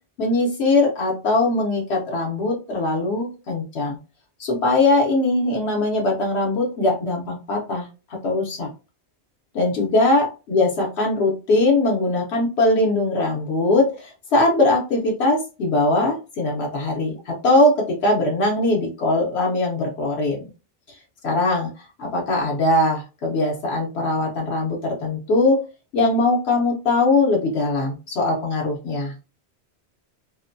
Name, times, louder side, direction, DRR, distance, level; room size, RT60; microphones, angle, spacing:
voice 1, 0.2-4.0 4.4-7.9 8.2-8.7 9.5-20.4 21.2-21.7 22.0-25.6 25.9-29.1, left 2 dB, 85° left, -1 dB, 1.0 m, -21 dB
2.6 x 2.1 x 2.5 m, 0.31 s
omnidirectional pair, 1.1 m